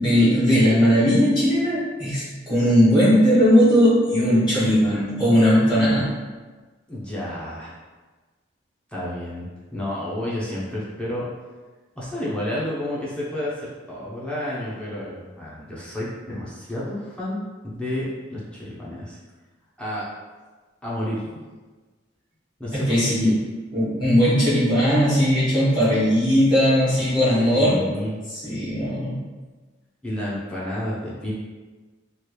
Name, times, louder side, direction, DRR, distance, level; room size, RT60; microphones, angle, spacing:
voice 1, 0.0-6.0 22.7-23.3 23.7-27.8 28.3-29.2, equal, 25° left, -11 dB, 1.5 m, -18 dB
voice 2, 6.9-7.7 8.9-11.3 11.9-17.4 17.7-18.1 18.3-19.2 19.8-20.2 20.8-21.2 22.6-23.3 27.5-28.1 30.0-31.3, left 1 dB, 5° left, -8 dB, 0.6 m, -30 dB
3.1 x 2.4 x 3.0 m, 1.3 s
head